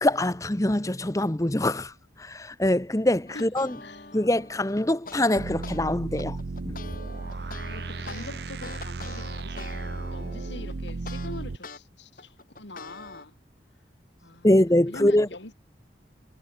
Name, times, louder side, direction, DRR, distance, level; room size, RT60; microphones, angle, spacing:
voice 1, 0.0-1.9 2.2-3.8 4.1-6.4 6.6-6.8 14.4-15.3, left 1 dB, 15° left, 0.9 m, -23 dB
sound 1, 3.3-5.8 6.2-11.8 12.2-13.2, left 3 dB, 50° left, 3.7 m, -44 dB
voice 2, 3.8-4.1 7.3-9.7 10.1-13.3 14.2-14.6 14.9-15.5, left 2 dB, 75° left, 3.2 m, -43 dB
sound 2, 5.4-11.6, right 3 dB, 60° right, 0.6 m, -35 dB
head